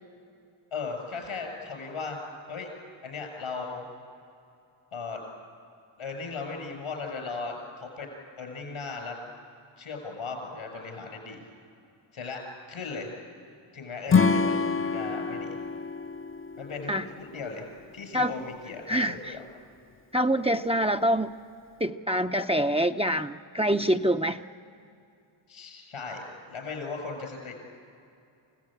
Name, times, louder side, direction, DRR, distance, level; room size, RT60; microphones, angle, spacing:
voice 1, 0.7-2.2 2.5-2.7 3.0-3.8 4.9-5.2 6.0-8.1 8.4-9.2 9.8-11.4 12.1-12.4 12.7-13.1 13.7-15.6 16.6-17.7 17.9-19.4 25.5-27.6, left 4 dB, 85° left, 3 dB, 6.4 m, -37 dB
Acoustic guitar / Strum, 14.1-17.4, left 5 dB, 25° left, 0.6 m, -26 dB
voice 2, 18.9-19.4 20.1-21.3 21.8-24.4, equal, 10° right, 6 dB, 0.6 m, -25 dB
28.5 x 16.5 x 8.7 m, 2.6 s
cardioid pair, 70°, 49 cm